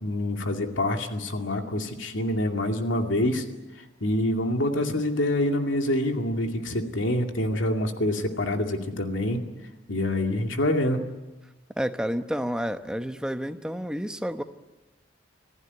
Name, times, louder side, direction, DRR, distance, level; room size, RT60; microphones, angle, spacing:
voice 1, 0.0-3.4 4.0-9.5 9.9-11.1, left 1 dB, 75° left, 4 dB, 2.4 m, -26 dB
voice 2, 11.8-14.4, equal, 5° right, 8 dB, 1.0 m, -30 dB
26.5 x 15.0 x 9.7 m, 1.1 s
head